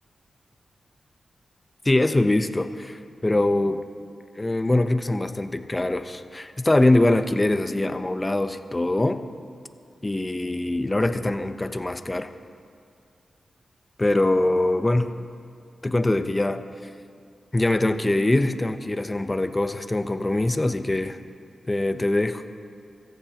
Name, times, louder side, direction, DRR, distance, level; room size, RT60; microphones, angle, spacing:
voice 1, 1.8-3.8 4.3-9.2 10.0-12.3 14.0-15.1 15.8-16.6 17.5-21.2 21.7-22.4, left 2 dB, 25° left, 9 dB, 0.9 m, -23 dB
24.5 x 14.5 x 3.0 m, 2.3 s
cardioid pair, 50°, 0 cm